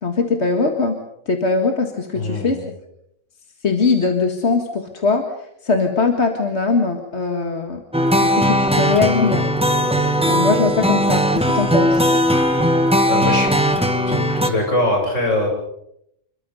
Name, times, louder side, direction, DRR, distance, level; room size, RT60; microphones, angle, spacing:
voice 1, 0.0-1.0 1.3-2.6 3.6-5.3 5.6-7.8 8.2-9.4 9.8-10.0 10.3-12.1, left 4 dB, 60° left, 4 dB, 2.1 m, -20 dB
voice 2, 2.1-2.7 13.1-13.5 14.1-15.5, left 1 dB, 80° left, 1 dB, 7.3 m, -22 dB
sound 1, 7.9-14.5, equal, 5° right, 1.7 m, -18 dB
27.5 x 22.5 x 5.5 m, 0.77 s
omnidirectional pair, 1.3 m